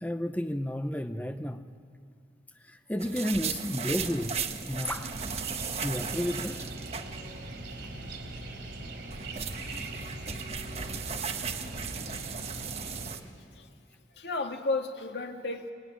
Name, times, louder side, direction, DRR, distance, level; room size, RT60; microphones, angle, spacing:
voice 1, 0.0-1.7 2.6-4.4 4.7-5.1 5.8-6.7, equal, 10° left, 0.7 m, -32 dB
sound 1, 3.0-7.5 7.8-7.9 8.8-13.2, right 6 dB, 35° right, 1.3 m, -36 dB
sound 2, 4.9-13.1, right 2 dB, 90° right, 4.0 m, -41 dB
voice 2, 14.2-15.7, left 3 dB, 80° left, 1.9 m, -33 dB
25.0 x 21.5 x 9.6 m
head